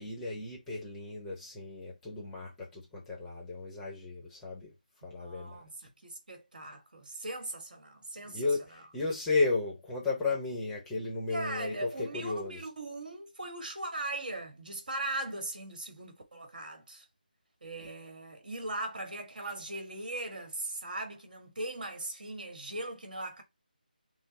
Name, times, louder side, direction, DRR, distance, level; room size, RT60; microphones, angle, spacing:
voice 1, 0.0-4.7 5.0-5.6 8.3-12.6 17.8-17.9, left 3 dB, 5° left, 0.8 m, -34 dB
voice 2, 5.0-8.4 11.3-17.1 17.6-23.4, right 2 dB, 60° right, 1.8 m, -39 dB
5.7 x 2.0 x 4.1 m
figure-of-eight pair, 170°, 5 cm